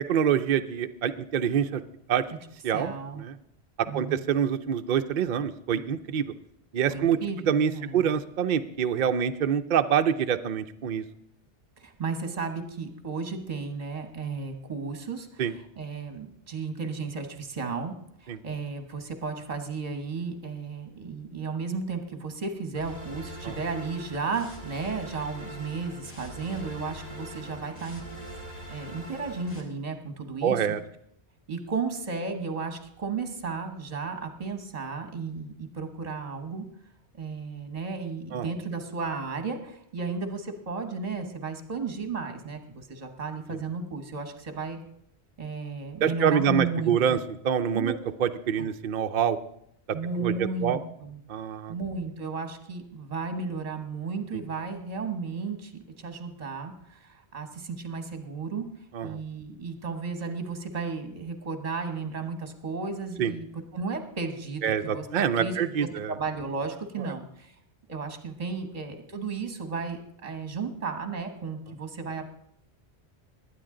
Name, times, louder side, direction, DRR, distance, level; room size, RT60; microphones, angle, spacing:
voice 1, 0.1-1.8 2.1-2.2 2.6-3.4 3.9-6.3 6.7-7.2 7.5-11.0 15.4-15.5 18.3-18.4 23.4-23.5 30.4-30.8 38.3-38.4 46.0-47.2 47.4-47.9 48.2-49.4 50.2-50.8 51.3-51.7 58.9-59.2 63.2-63.3 64.6-66.1, right 8 dB, 55° right, 8 dB, 0.7 m, -26 dB
voice 2, 2.7-3.2 3.9-4.2 6.9-8.0 11.8-15.4 15.8-17.9 18.2-28.0 28.7-30.7 31.5-36.7 37.2-44.8 45.4-47.2 47.7-47.9 48.6-48.7 49.9-51.2 51.7-58.7 59.0-63.4 63.7-65.1 65.4-65.6 66.1-67.6 67.9-72.3, right 4 dB, 35° right, 7 dB, 1.3 m, -34 dB
sound 1, 22.7-29.6, equal, 35° left, 2.1 m, -42 dB
21.0 x 9.2 x 3.8 m, 0.71 s
omnidirectional pair, 1.1 m